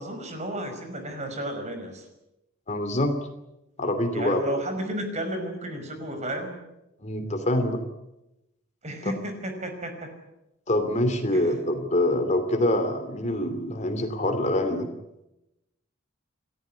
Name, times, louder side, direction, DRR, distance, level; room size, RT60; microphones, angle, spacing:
voice 1, 0.0-2.1 4.1-6.6 8.8-10.1 11.3-11.5, right 1 dB, 35° right, 6 dB, 5.5 m, -32 dB
voice 2, 2.7-3.1 3.8-4.4 7.0-7.8 9.0-9.1 10.7-14.9, left 1 dB, 35° left, 8 dB, 2.8 m, -25 dB
29.5 x 14.5 x 9.9 m, 0.92 s
head